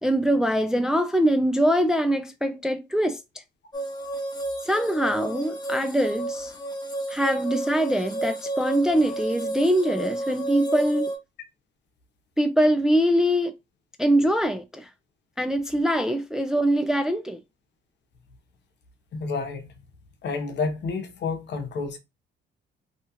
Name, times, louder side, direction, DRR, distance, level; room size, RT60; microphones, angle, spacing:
voice 1, 0.0-3.2 4.6-6.5 7.1-11.1 12.4-13.5 14.0-14.9 15.4-17.4, equal, 5° right, 0.3 m, -23 dB
sound 1, 3.7-11.2, right 2 dB, 20° left, 0.7 m, -31 dB
voice 2, 19.1-19.7 20.2-22.0, left 4 dB, 60° left, 0.8 m, -30 dB
2.8 x 2.3 x 2.8 m
cardioid pair, 90°, 20 cm